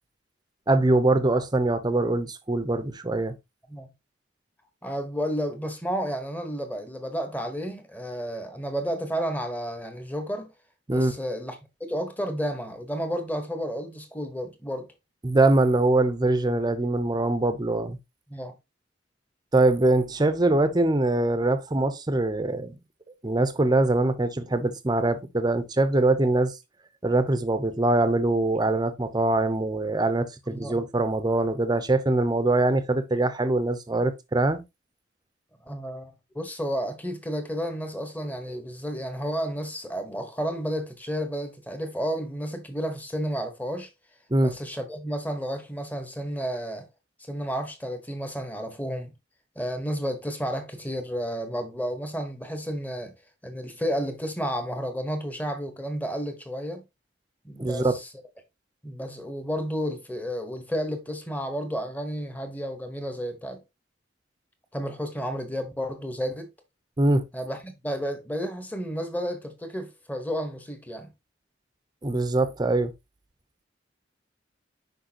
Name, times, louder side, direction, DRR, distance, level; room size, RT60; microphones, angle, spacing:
voice 1, 0.7-3.3 10.9-11.1 15.2-18.0 19.5-22.8 23.2-26.6 27.0-34.6 44.3-44.5 57.6-57.9 67.0-67.2 72.0-72.9, right 2 dB, 20° right, 0.7 m, -23 dB
voice 2, 4.8-10.5 10.9-14.9 18.3-18.5 30.5-30.7 35.6-43.9 44.4-46.9 47.3-49.1 49.6-53.1 53.4-56.8 57.4-58.1 58.8-63.6 64.7-66.5 67.3-71.1, equal, 10° left, 1.1 m, -31 dB
6.4 x 5.3 x 2.9 m
head